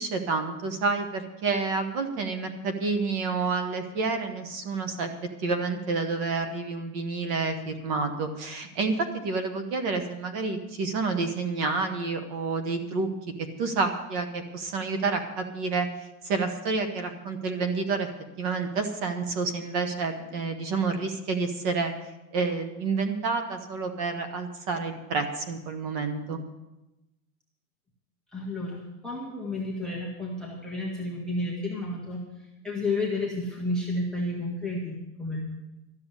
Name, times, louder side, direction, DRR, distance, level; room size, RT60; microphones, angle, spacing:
voice 1, 0.0-5.1 5.4-13.1 13.6-15.9 16.2-18.1 18.4-21.9 22.3-26.4, right 4 dB, 25° right, 8 dB, 1.0 m, -29 dB
voice 2, 28.3-35.4, left 2 dB, ahead, -2 dB, 0.7 m, -31 dB
13.0 x 6.8 x 9.7 m, 0.98 s
supercardioid pair, 170°, 44 cm